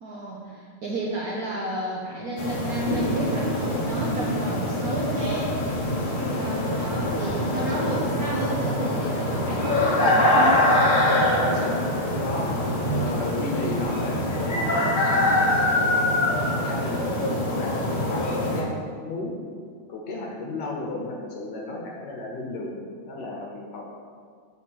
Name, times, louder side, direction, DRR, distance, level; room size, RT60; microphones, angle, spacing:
voice 1, 0.0-5.5 6.4-10.7, right 2 dB, 65° right, -4 dB, 0.9 m, -32 dB
sound 1, 2.4-18.6, left 1 dB, 45° left, 0.6 m, -24 dB
voice 2, 6.1-6.4 11.3-12.6 12.9-15.6 16.4-17.8 18.1-19.4 19.9-22.8 23.0-24.0, left 2 dB, 60° left, -1 dB, 1.4 m, -34 dB
6.3 x 4.3 x 6.0 m, 2.1 s
omnidirectional pair, 2.4 m